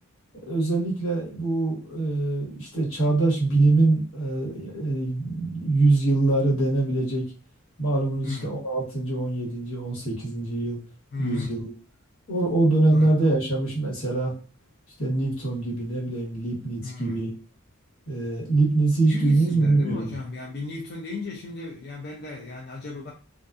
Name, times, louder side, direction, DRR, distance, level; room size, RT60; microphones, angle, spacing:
voice 1, 0.4-7.2 7.8-10.8 11.2-11.7 12.3-14.3 15.0-17.3 18.1-20.1, right 2 dB, 75° left, -5 dB, 1.4 m, -24 dB
voice 2, 8.2-8.5 11.1-11.6 12.9-13.1 16.8-17.2 19.1-23.1, left 3 dB, 50° left, -1 dB, 0.4 m, -35 dB
2.4 x 2.4 x 2.4 m, 0.36 s
head